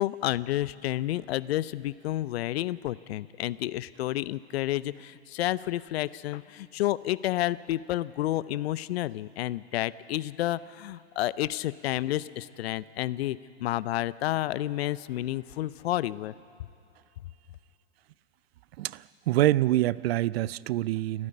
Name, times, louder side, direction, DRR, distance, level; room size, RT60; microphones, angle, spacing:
voice 1, 0.0-16.3, left 14 dB, 65° left, 18 dB, 0.7 m, -30 dB
voice 2, 18.8-21.3, right 15 dB, 65° right, 21 dB, 0.6 m, -26 dB
29.0 x 9.7 x 9.7 m, 2.8 s
hypercardioid pair, 105°, 33 cm